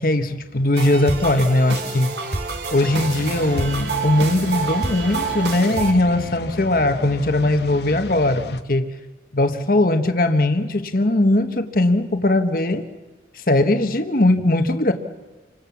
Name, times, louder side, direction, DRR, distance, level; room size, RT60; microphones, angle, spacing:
voice 1, 0.0-2.1 2.7-8.9 9.3-12.9 13.3-14.9, left 1 dB, 50° left, 7 dB, 1.3 m, -19 dB
sound 1, 0.7-5.9, right 4 dB, 70° right, 2.8 m, -27 dB
sound 2, 2.7-8.6, left 2 dB, 70° left, 1.1 m, -35 dB
28.5 x 25.0 x 7.2 m, 1.2 s
head